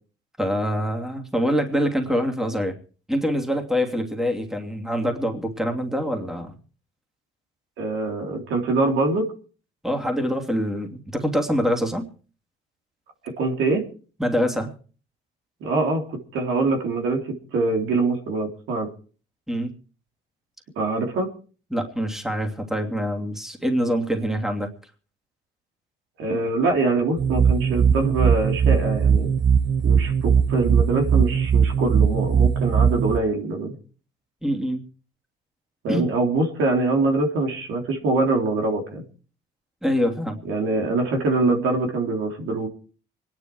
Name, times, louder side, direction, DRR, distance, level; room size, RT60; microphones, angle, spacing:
voice 1, 0.4-2.7 3.1-6.6 9.8-12.1 14.2-14.7 19.5-19.7 21.7-24.7 34.4-34.8 35.9-36.1 39.8-40.4, equal, ahead, 3 dB, 2.8 m, -25 dB
voice 2, 7.8-9.3 13.2-13.8 15.6-18.9 20.7-21.3 26.2-29.3 29.8-33.7 35.8-39.0 40.4-42.7, right 3 dB, 85° right, 3 dB, 3.5 m, -24 dB
sound 1, 27.2-33.2, right 7 dB, 60° right, 1.2 m, -19 dB
24.5 x 10.5 x 4.6 m, 0.40 s
cardioid pair, 90°, 20 cm